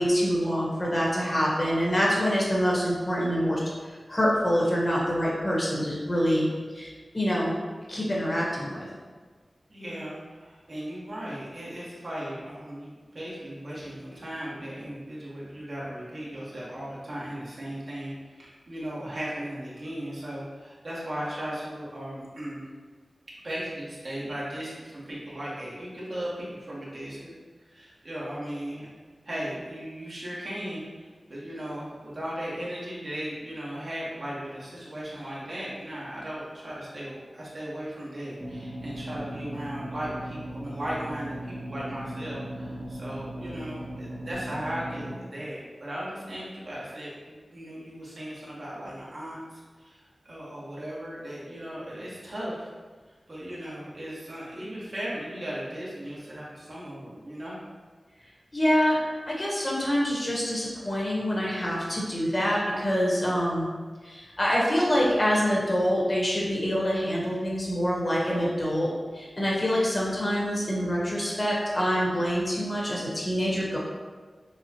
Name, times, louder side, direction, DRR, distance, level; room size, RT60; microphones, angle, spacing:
voice 1, 0.0-3.6 4.1-6.4 6.7-7.5 7.9-8.8 58.5-59.0 59.3-63.7 64.0-73.8, equal, 35° left, -5 dB, 1.2 m, -26 dB
voice 2, 9.7-22.7 23.4-27.3 27.6-28.9 29.2-52.7 53.3-57.6, equal, 55° right, -8 dB, 1.5 m, -37 dB
sound 1, 38.4-45.2, right 1 dB, 35° right, 1.0 m, -38 dB
6.6 x 2.3 x 2.9 m, 1.5 s
wide cardioid pair, 55°, 0 cm